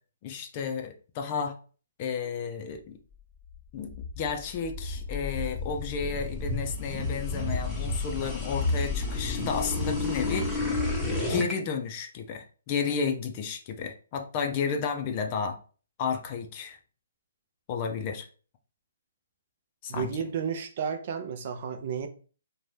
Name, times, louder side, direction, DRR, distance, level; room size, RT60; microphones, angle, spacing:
voice 1, 0.2-1.6 2.0-3.0 3.7-10.9 11.2-15.6 16.0-16.8 17.7-18.3 19.8-20.1, left 6 dB, 35° left, 0.4 m, -32 dB
sound 1, 3.5-11.5, left 3 dB, 5° left, 0.7 m, -31 dB
voice 2, 19.9-22.1, right 7 dB, 45° right, 0.5 m, -32 dB
2.6 x 2.2 x 3.2 m
hypercardioid pair, 145°, 0 cm